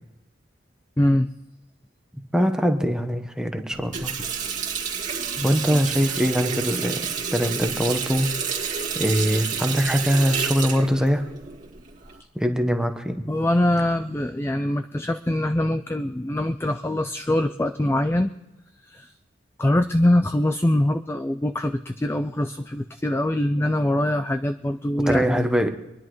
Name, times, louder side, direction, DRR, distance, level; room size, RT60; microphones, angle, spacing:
voice 1, 1.0-1.3 5.4-5.8 13.3-18.3 18.9-19.1 19.6-25.4, left 1 dB, 15° left, 9 dB, 0.4 m, -23 dB
voice 2, 2.3-4.1 5.4-7.1 7.3-11.2 12.3-13.2 25.1-25.7, equal, 5° right, 4 dB, 1.0 m, -23 dB
Water tap faucet, 3.7-12.2, right 6 dB, 40° right, 2.0 m, -29 dB
25.5 x 11.0 x 3.1 m, 1.0 s
head